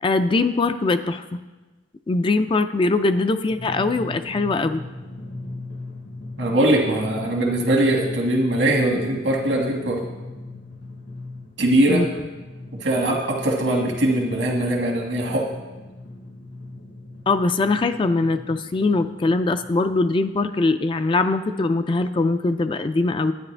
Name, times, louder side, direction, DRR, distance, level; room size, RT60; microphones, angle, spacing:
voice 1, 0.0-1.4 2.1-4.8 11.9-12.1 17.3-23.3, left 3 dB, 30° left, 10 dB, 0.3 m, -22 dB
Drum, 3.5-19.7, left 2 dB, 70° left, 1.3 m, -38 dB
voice 2, 6.4-10.0 11.6-12.1 12.8-15.5, right 1 dB, 85° right, -1 dB, 1.6 m, -21 dB
11.0 x 9.4 x 3.3 m, 1.2 s
head